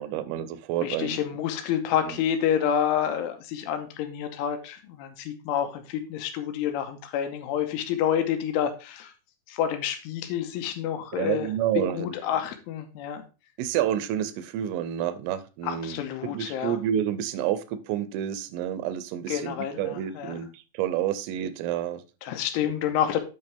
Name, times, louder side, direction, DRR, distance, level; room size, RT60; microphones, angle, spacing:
voice 1, 0.0-1.2 11.1-12.1 13.6-16.0 16.3-22.0, right 10 dB, 85° right, 13 dB, 3.2 m, -29 dB
voice 2, 0.8-9.1 9.5-11.5 11.8-13.2 15.6-16.8 19.3-20.4 22.2-23.3, left 9 dB, 85° left, 7 dB, 3.2 m, -28 dB
8.8 x 5.6 x 3.5 m, 0.31 s
omnidirectional pair, 5.7 m